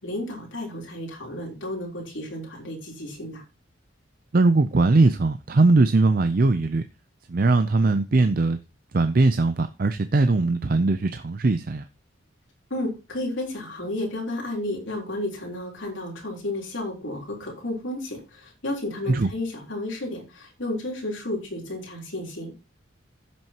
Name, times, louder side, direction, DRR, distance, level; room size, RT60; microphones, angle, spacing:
voice 1, 0.0-3.4 12.7-22.5, left 1 dB, 70° left, 3.5 m, -32 dB
voice 2, 4.3-6.8 7.3-8.6 8.9-11.8 19.1-19.3, right 3 dB, 45° right, 0.5 m, -20 dB
15.0 x 6.2 x 2.9 m
head